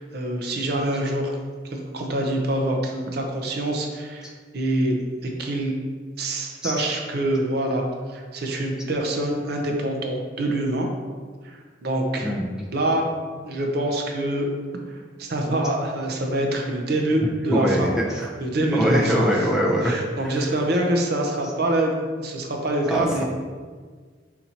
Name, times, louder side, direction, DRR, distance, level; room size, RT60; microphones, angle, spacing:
voice 1, 0.0-1.3 1.7-4.3 4.5-5.0 5.4-5.7 6.2-7.8 8.1-10.9 11.4-12.3 12.7-13.1 13.4-14.5 14.9-17.9 18.4-19.3 19.8-23.2, right 1 dB, 55° right, 2 dB, 0.6 m, -25 dB
voice 2, 17.5-18.3 18.7-20.6 22.9-23.2, equal, 5° right, -4 dB, 0.5 m, -23 dB
4.2 x 2.6 x 4.2 m, 1.5 s
head